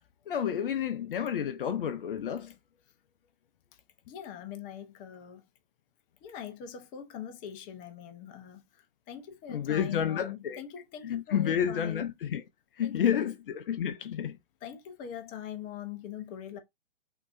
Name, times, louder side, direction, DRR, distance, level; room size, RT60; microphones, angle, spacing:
voice 1, 0.3-2.5 9.5-10.6 11.0-12.4 12.8-14.4, left 9 dB, 60° left, 0.7 m, -30 dB
voice 2, 4.1-5.4 6.2-12.1 12.8-13.3 14.6-16.6, left 9 dB, 25° left, 0.9 m, -42 dB
6.0 x 2.8 x 2.6 m
hypercardioid pair, 125°, 31 cm